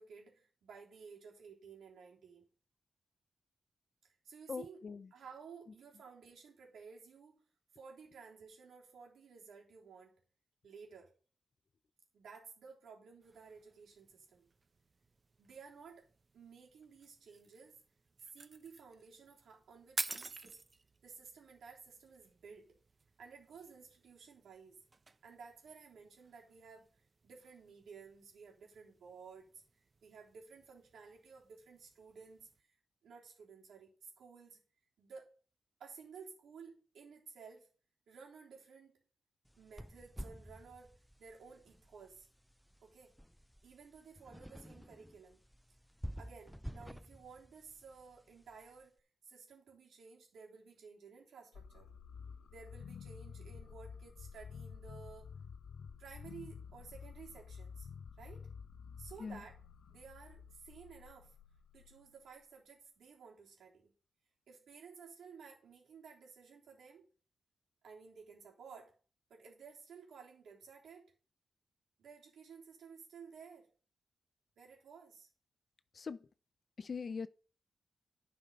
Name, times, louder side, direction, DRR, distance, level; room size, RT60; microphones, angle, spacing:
voice 1, 0.0-2.5 4.0-4.8 5.1-7.5 7.7-10.2 10.6-11.1 12.1-14.5 15.4-16.1 16.3-17.8 18.3-20.6 21.0-22.8 23.2-24.8 25.2-29.6 30.0-32.7 33.0-34.6 35.0-35.3 35.8-37.7 38.1-39.0 39.6-42.3 42.8-43.1 43.6-45.4 46.1-49.0 49.2-51.9 52.5-55.3 56.0-57.9 58.2-58.5 59.0-59.6 59.9-61.4 61.7-63.9 64.5-67.1 67.8-68.9 69.3-71.1 72.0-73.7 74.6-75.3, right 5 dB, 85° right, 3.5 m, -55 dB
voice 2, 4.5-5.1 59.2-59.4 75.9-76.3 76.8-77.3, left 5 dB, 50° left, 0.6 m, -42 dB
sound 1, 13.2-32.6, right 3 dB, 35° right, 0.6 m, -52 dB
sound 2, 39.5-48.8, equal, ahead, 0.3 m, -51 dB
sound 3, 51.5-62.4, left 6 dB, 85° left, 0.8 m, -51 dB
11.0 x 5.6 x 5.3 m
cardioid pair, 90°, 0 cm